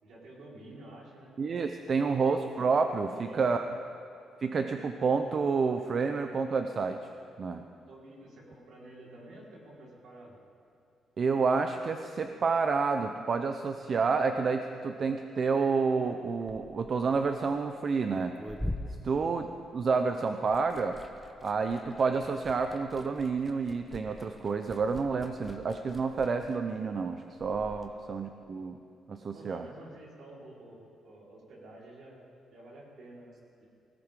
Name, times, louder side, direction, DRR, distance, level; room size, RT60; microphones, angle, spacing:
voice 1, 0.0-1.3 3.1-3.4 7.8-10.4 19.0-19.3 27.8-28.0 29.3-32.2 32.5-33.6, right 1 dB, 70° right, -4 dB, 4.7 m, -50 dB
voice 2, 1.4-3.7 4.4-7.0 7.4-7.6 11.2-18.4 18.9-19.5 19.7-21.0 21.4-28.8 29.1-29.7, right 4 dB, 45° right, 6 dB, 0.7 m, -29 dB
Liquid, 16.3-20.0 20.3-27.9, left 1 dB, ahead, 1.1 m, -44 dB
20.0 x 17.0 x 3.8 m, 2.7 s
cardioid pair, 90°, 0 cm